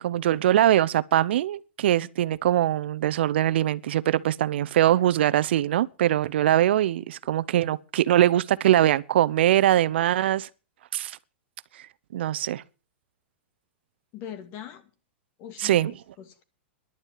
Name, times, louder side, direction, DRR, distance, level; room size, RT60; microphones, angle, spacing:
voice 1, 0.0-10.5 10.9-11.2 11.7-11.9 12.1-12.6 15.6-15.9, right 12 dB, 70° right, 0.8 m, -22 dB
voice 2, 14.1-14.9 15.4-16.4, left 9 dB, 40° left, 2.4 m, -42 dB
11.0 x 9.8 x 7.5 m
hypercardioid pair, 130°, 6 cm